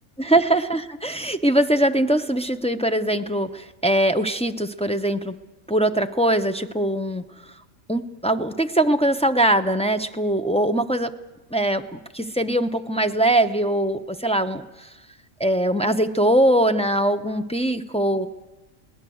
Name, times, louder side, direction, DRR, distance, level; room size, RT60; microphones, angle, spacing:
voice 1, 0.2-5.3 5.7-7.2 7.9-11.1 11.5-14.9 15.4-18.3, right 1 dB, 5° left, 5 dB, 0.6 m, -22 dB
22.5 x 18.5 x 7.8 m, 1.1 s
omnidirectional pair, 1.3 m